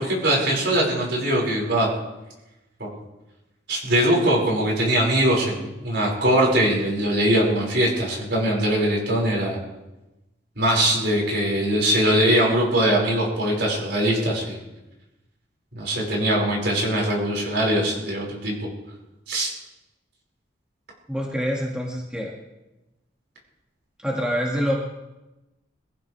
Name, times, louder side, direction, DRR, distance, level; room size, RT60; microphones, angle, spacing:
voice 1, 0.0-1.9 2.8-2.9 3.7-9.6 10.6-14.6 15.7-18.7 19.3-19.5, right 1 dB, 65° right, -2 dB, 5.5 m, -21 dB
voice 2, 21.1-22.3 24.0-24.7, equal, 5° right, -3 dB, 1.9 m, -26 dB
22.5 x 15.0 x 3.4 m, 1.0 s
head